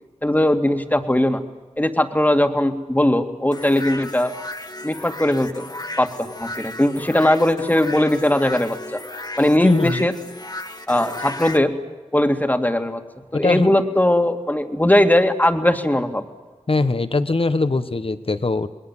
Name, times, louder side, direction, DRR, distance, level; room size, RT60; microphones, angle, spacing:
voice 1, 0.2-1.4 1.8-4.3 4.8-5.7 6.0-9.0 9.4-10.1 10.9-11.7 12.1-13.0 13.3-16.2, left 1 dB, 15° left, 6 dB, 2.2 m, -19 dB
sound 1, 3.5-11.6, left 2 dB, 35° left, 1.5 m, -34 dB
voice 2, 9.6-10.1 13.3-13.7 16.7-18.7, left 3 dB, 50° left, 12 dB, 1.4 m, -21 dB
28.5 x 21.0 x 7.5 m, 1.3 s
wide cardioid pair, 60°, 12 cm